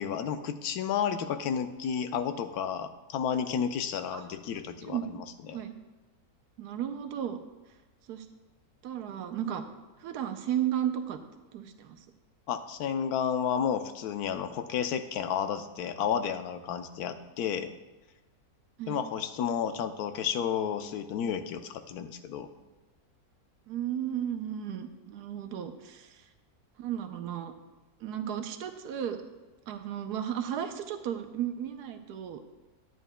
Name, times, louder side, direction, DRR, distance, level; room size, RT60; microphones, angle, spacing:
voice 1, 0.0-5.6 12.5-17.7 18.9-22.5, left 8 dB, 80° left, 9 dB, 1.1 m, -32 dB
voice 2, 4.5-5.1 5.5-5.7 6.6-7.4 8.1-8.3 8.8-9.6 10.0-11.2 11.5-12.0 18.8-19.0 23.7-26.2 26.8-27.5 28.0-29.2 29.7-32.4, right 10 dB, 90° right, 8 dB, 1.2 m, -34 dB
11.0 x 9.1 x 2.2 m, 1.1 s
omnidirectional pair, 1.6 m